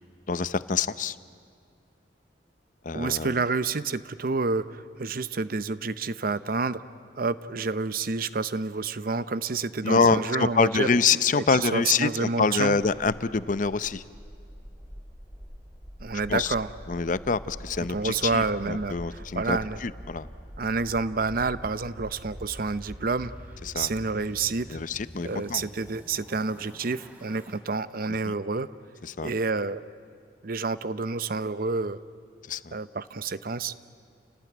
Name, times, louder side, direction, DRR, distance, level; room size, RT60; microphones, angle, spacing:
voice 1, 0.3-1.2 2.8-3.4 9.8-14.0 16.3-16.5 16.9-20.3 23.6-23.9 24.7-25.6 28.2-28.3 29.0-29.3 32.5-32.8, left 4 dB, 50° left, 15 dB, 0.7 m, -26 dB
voice 2, 2.9-6.8 7.2-10.9 11.3-12.8 16.0-16.7 17.9-19.8 20.6-23.3 23.7-24.8 25.2-28.7 29.2-29.8 30.4-32.0 32.7-33.7, right 4 dB, 55° right, 15 dB, 0.7 m, -29 dB
sound 1, 13.3-27.6, equal, 10° right, 3.1 m, -45 dB
29.5 x 18.0 x 9.1 m, 2.3 s
head